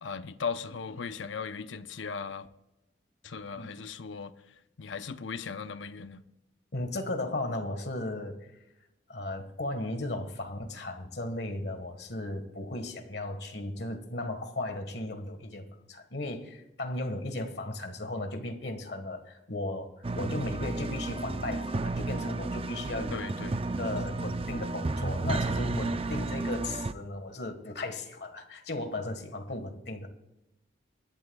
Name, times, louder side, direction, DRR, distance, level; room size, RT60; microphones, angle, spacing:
voice 1, 0.0-2.5 3.2-4.3 4.8-6.2 23.1-23.6, left 5 dB, 85° left, 0.7 m, -37 dB
voice 2, 6.7-8.4 9.1-23.3 23.8-30.1, left 2 dB, 60° left, 1.5 m, -36 dB
sound 1, 20.0-26.9, right 2 dB, 30° right, 0.4 m, -32 dB
22.5 x 11.5 x 2.3 m
head